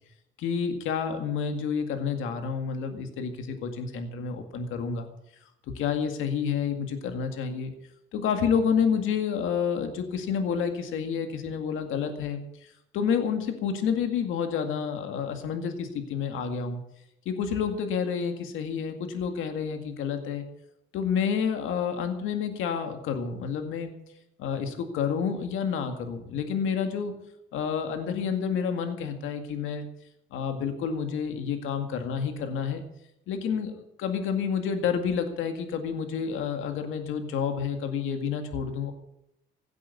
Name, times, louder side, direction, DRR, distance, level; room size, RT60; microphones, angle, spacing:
voice 1, 0.4-5.1 5.7-7.7 8.1-16.8 17.3-20.5 20.9-23.9 24.4-27.2 27.5-29.9 30.3-32.8 33.3-38.9, left 6 dB, 90° left, 6 dB, 2.1 m, -29 dB
17.0 x 8.5 x 8.4 m, 0.82 s
cardioid pair, 90°, 20 cm